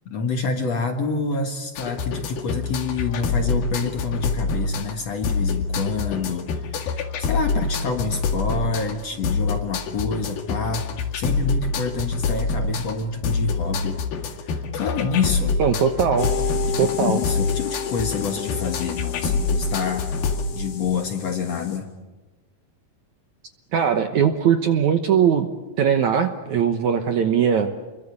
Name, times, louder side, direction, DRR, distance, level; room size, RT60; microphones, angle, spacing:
voice 1, 0.1-10.9 11.1-14.0 14.4-15.6 16.7-20.1 20.5-21.9, left 5 dB, 50° left, 5 dB, 2.2 m, -27 dB
sound 1, 1.8-20.5, left 4 dB, 70° left, 3.7 m, -26 dB
voice 2, 15.6-16.3 16.8-17.2 23.7-25.5 25.8-27.7, right 7 dB, 65° right, 7 dB, 2.0 m, -20 dB
sound 2, 16.2-21.8, left 8 dB, 90° left, 6.1 m, -32 dB
29.0 x 23.0 x 8.5 m, 1.2 s
omnidirectional pair, 4.6 m